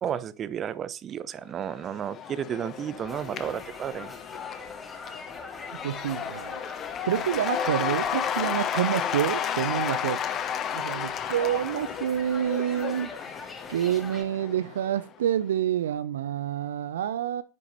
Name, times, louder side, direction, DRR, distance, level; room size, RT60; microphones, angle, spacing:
voice 1, 0.0-4.1, right 9 dB, 25° right, 0.9 m, -32 dB
Cheering / Applause / Crowd, 1.6-15.1, left 9 dB, 30° left, 1.3 m, -33 dB
sound 1, 3.1-14.2, left 3 dB, 10° left, 5.0 m, -44 dB
voice 2, 5.8-6.6 7.0-10.2 10.7-13.1 13.7-17.4, right 10 dB, 60° right, 0.6 m, -28 dB
10.5 x 10.0 x 4.0 m
figure-of-eight pair, 90°, 0 cm